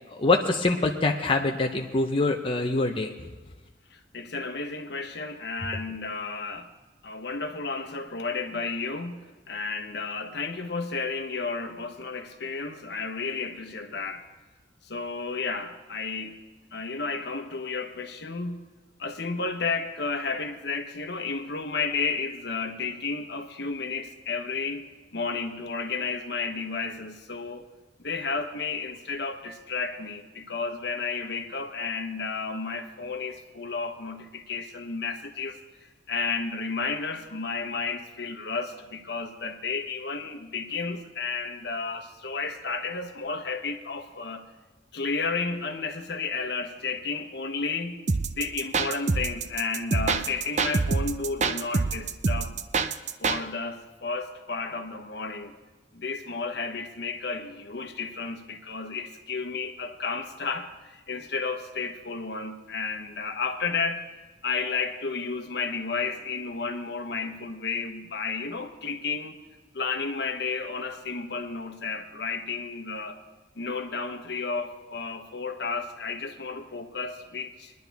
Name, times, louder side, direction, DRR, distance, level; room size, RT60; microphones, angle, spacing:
voice 1, 0.1-3.3, left 2 dB, 30° left, 2 dB, 0.7 m, -25 dB
voice 2, 3.9-6.7 7.0-14.2 14.8-16.4 16.7-18.7 19.0-27.7 28.0-44.5 44.9-48.0 48.4-52.6 53.2-55.5 55.9-64.0 64.4-69.4 69.7-73.2 73.5-77.7, left 4 dB, 65° left, 6 dB, 1.1 m, -32 dB
sound 1, 48.1-53.4, right 4 dB, 40° right, 0.5 m, -26 dB
22.5 x 10.5 x 3.5 m, 1.2 s
head